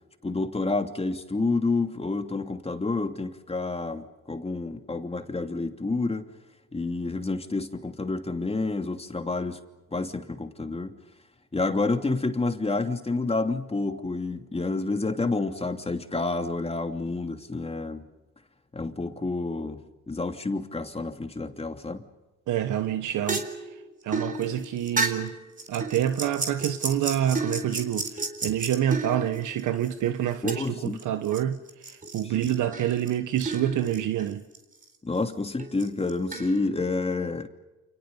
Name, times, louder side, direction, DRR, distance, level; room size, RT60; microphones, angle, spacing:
voice 1, 0.2-6.3 6.7-9.6 9.9-11.0 11.5-18.1 18.7-22.0 30.4-31.0 32.2-32.5 35.0-37.5, left 3 dB, 20° left, 2.8 m, -29 dB
voice 2, 22.5-23.8 24.0-25.3 25.7-34.4, right 11 dB, 80° right, 1.4 m, -27 dB
sound 1, 22.9-29.9 30.5-31.4 31.7-34.6 34.8-34.9 35.6-36.6, right 3 dB, 25° right, 4.1 m, -33 dB
30.0 x 29.0 x 5.5 m
cardioid pair, 90°, 30 cm